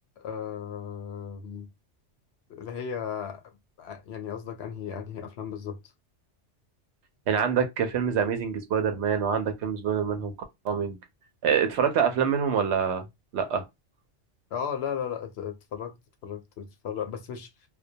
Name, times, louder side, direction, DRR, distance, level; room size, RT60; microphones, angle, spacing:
voice 1, 0.2-1.7 2.5-3.4 3.8-5.8 14.5-16.0 16.2-17.5, left 8 dB, 65° left, 0.8 m, -35 dB
voice 2, 7.3-10.3 10.6-11.0 11.4-13.0 13.3-13.6, right 7 dB, 70° right, 0.8 m, -25 dB
2.2 x 2.1 x 2.6 m
omnidirectional pair, 1.2 m